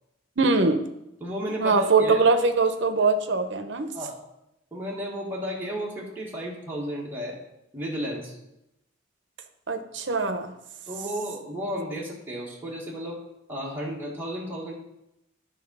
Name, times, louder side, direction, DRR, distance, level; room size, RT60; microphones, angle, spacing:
voice 1, 0.4-0.8 1.6-3.9 9.7-10.5, right 4 dB, 60° right, 8 dB, 0.8 m, -22 dB
voice 2, 1.2-2.2 3.9-4.1 4.7-7.4 7.7-8.4 10.9-13.2 13.5-14.7, equal, 10° right, -5 dB, 1.5 m, -33 dB
11.0 x 3.7 x 5.4 m, 0.86 s
head